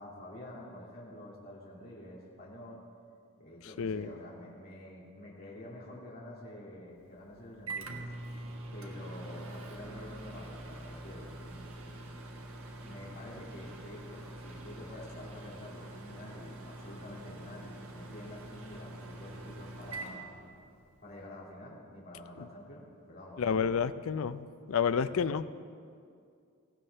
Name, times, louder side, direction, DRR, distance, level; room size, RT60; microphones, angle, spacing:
voice 1, 0.0-2.8 3.4-8.0 8.7-12.1 12.8-20.3 21.0-24.0 24.9-25.2, left 1 dB, 45° left, -6 dB, 2.2 m, -48 dB
voice 2, 3.8-4.1 23.4-25.5, left 6 dB, 70° left, 14 dB, 0.4 m, -30 dB
Microwave oven, 7.0-21.0, right 2 dB, 80° right, 1.4 m, -45 dB
18.0 x 16.0 x 3.3 m, 2.3 s
head